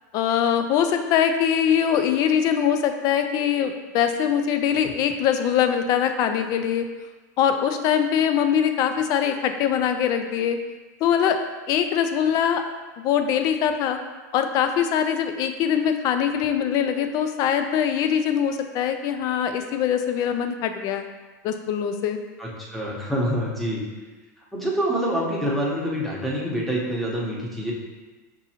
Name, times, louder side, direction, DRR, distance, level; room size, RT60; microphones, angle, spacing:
voice 1, 0.1-6.9 7.4-10.6 11.0-11.4 11.7-12.6 13.0-14.0 14.3-21.0 21.4-22.2, left 8 dB, 40° left, 7 dB, 0.4 m, -22 dB
voice 2, 22.4-23.8 24.5-27.7, equal, ahead, -5 dB, 0.8 m, -26 dB
6.0 x 2.6 x 2.8 m, 1.3 s
supercardioid pair, 135°, 10 cm